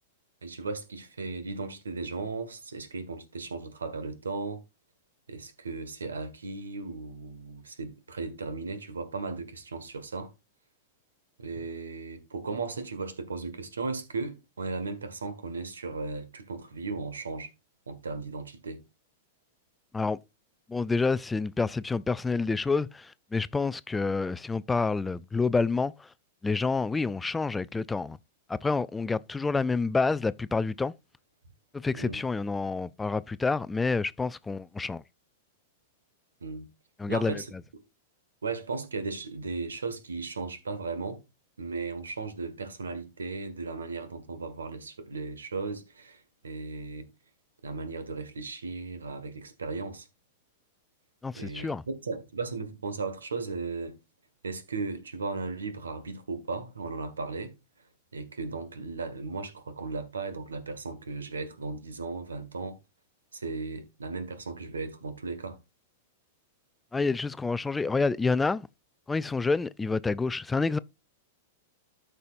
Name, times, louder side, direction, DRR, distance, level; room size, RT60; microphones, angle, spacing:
voice 1, 0.4-4.6 5.3-10.3 11.4-17.5 17.9-18.8 31.9-32.2 36.4-36.7 37.1-37.5 38.4-41.2 41.6-47.1 47.6-50.1 51.4-54.0 54.4-57.5 58.1-62.8 63.3-65.6, right 4 dB, 85° right, 1.6 m, -36 dB
voice 2, 20.7-26.1 26.4-28.2 28.5-30.9 31.7-35.0 37.0-37.4 51.2-51.8 66.9-68.7 69.1-70.8, left 4 dB, 10° left, 0.3 m, -28 dB
13.0 x 5.6 x 2.5 m
hypercardioid pair, 105°, 0 cm